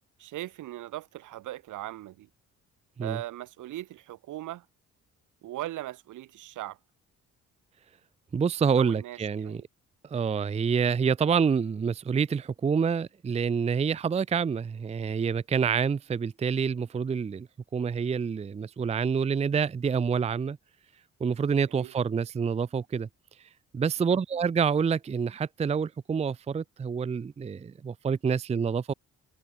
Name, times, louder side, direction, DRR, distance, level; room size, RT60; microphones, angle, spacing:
voice 1, 0.2-2.3 3.0-4.7 5.4-6.8 8.8-9.6 21.7-21.9 24.1-24.2, right 15 dB, 85° right, 3.0 m, -39 dB
voice 2, 8.3-9.6 10.0-17.5 17.7-20.6 21.2-23.1 23.7-28.9, right 6 dB, 20° right, 0.5 m, -27 dB
cardioid pair, 90°, 30 cm